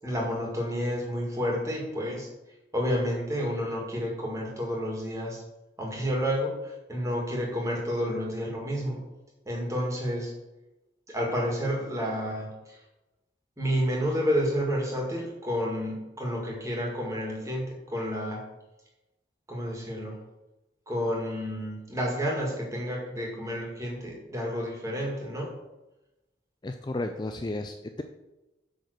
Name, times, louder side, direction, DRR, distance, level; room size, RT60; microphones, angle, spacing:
voice 1, 0.0-2.3 2.7-5.4 5.8-9.0 9.5-10.4 11.1-12.8 13.6-18.4 19.5-20.2 20.9-25.5, equal, 15° right, -2 dB, 2.2 m, -30 dB
voice 2, 26.6-28.0, left 2 dB, 25° left, 5 dB, 0.4 m, -33 dB
8.8 x 4.1 x 6.6 m, 0.99 s
head